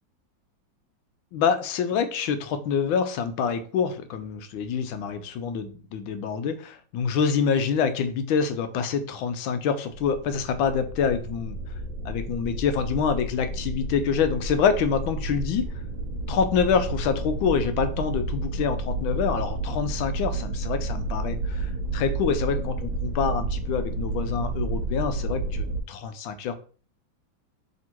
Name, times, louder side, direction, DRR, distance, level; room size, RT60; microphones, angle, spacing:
voice 1, 1.3-11.6 12.0-15.7 16.3-26.5, left 6 dB, 85° left, 9 dB, 1.4 m, -26 dB
sound 1, 9.9-25.8, right 2 dB, 85° right, 1.4 m, -31 dB
3.5 x 2.9 x 4.3 m, 0.41 s
omnidirectional pair, 2.1 m